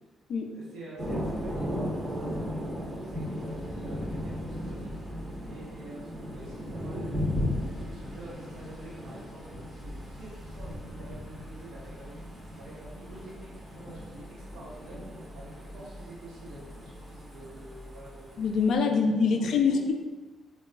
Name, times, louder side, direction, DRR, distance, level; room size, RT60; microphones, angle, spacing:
voice 1, 0.5-4.9 5.4-12.1 12.6-15.0 15.3-18.4 18.7-19.8, right 2 dB, 80° right, -7 dB, 0.9 m, -47 dB
Thunder, 1.0-18.8, equal, 15° right, 0.7 m, -37 dB
voice 2, 18.4-19.9, left 5 dB, 65° left, 4 dB, 0.3 m, -24 dB
3.8 x 2.3 x 2.2 m, 1.3 s
cardioid pair, 90°, 0 cm